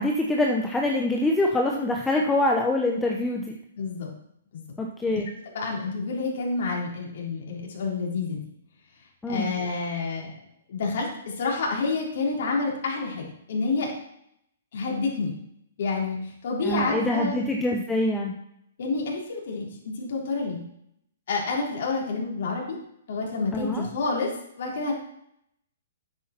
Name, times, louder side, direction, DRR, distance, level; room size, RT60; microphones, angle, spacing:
voice 1, 0.0-3.6 4.8-5.3 9.2-9.6 16.6-18.3 23.5-23.9, left 1 dB, 10° left, 1 dB, 0.8 m, -25 dB
voice 2, 3.8-4.1 4.5-4.6 5.1-5.2 5.5-8.4 9.3-10.3 10.7-11.1 11.4-13.9 14.7-15.3 15.8-17.4 18.8-20.6 21.3-22.8 23.1-24.3 24.6-24.9, left 3 dB, 60° left, -2 dB, 3.6 m, -28 dB
9.9 x 8.4 x 4.4 m, 0.75 s
hypercardioid pair, 145°, 0 cm